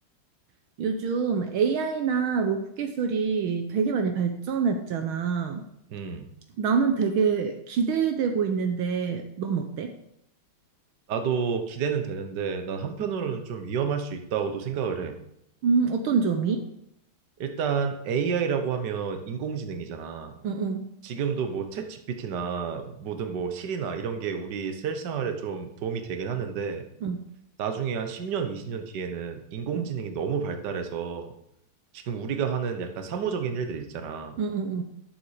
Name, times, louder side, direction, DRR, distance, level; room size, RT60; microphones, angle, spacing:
voice 1, 0.8-5.6 6.6-9.9 15.6-16.7 20.4-20.9 27.0-27.2 29.7-29.9 34.4-34.8, right 5 dB, 75° right, 5 dB, 1.7 m, -26 dB
voice 2, 5.9-6.3 11.1-15.2 17.4-20.4 21.0-26.8 27.6-31.3 31.9-34.4, right 6 dB, 55° right, 6 dB, 1.6 m, -30 dB
11.5 x 7.2 x 4.9 m, 0.76 s
omnidirectional pair, 2.3 m